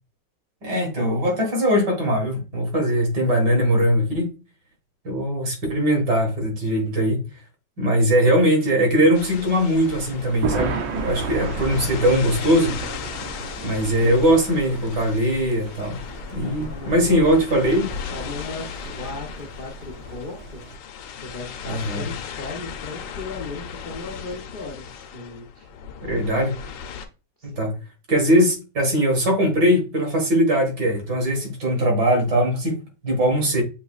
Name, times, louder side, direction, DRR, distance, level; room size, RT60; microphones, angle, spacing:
voice 1, 0.6-4.3 5.0-7.2 7.8-12.8 13.6-16.0 16.3-17.9 21.7-22.1 26.0-26.5 27.4-27.8 28.1-33.6, equal, 70° right, 2.1 m, -20 dB
sound 1, 9.1-27.1, left 7 dB, 85° left, 1.3 m, -37 dB
Thunder, 9.2-20.8, right 4 dB, 90° right, 1.4 m, -34 dB
voice 2, 16.4-17.3 18.1-20.6 21.1-25.7 27.4-27.7, left 3 dB, 60° left, 0.5 m, -37 dB
6.9 x 2.9 x 2.3 m
omnidirectional pair, 1.9 m